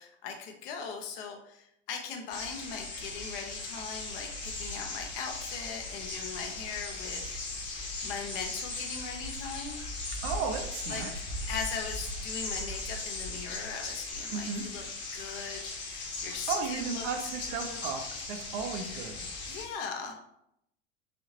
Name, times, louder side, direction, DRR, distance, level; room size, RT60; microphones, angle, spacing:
voice 1, 0.0-7.2 8.0-9.8 10.9-11.1 11.5-14.9 15.1-17.9 18.8-19.1 19.5-20.2, left 6 dB, 50° left, 4 dB, 0.9 m, -40 dB
sound 1, 2.3-19.7, left 2 dB, 30° left, 1.2 m, -38 dB
voice 2, 10.2-11.1 14.3-14.6 16.5-18.0 18.3-19.2, right 5 dB, 50° right, 4 dB, 0.8 m, -34 dB
6.3 x 2.9 x 2.9 m, 0.77 s
figure-of-eight pair, 80°, 36 cm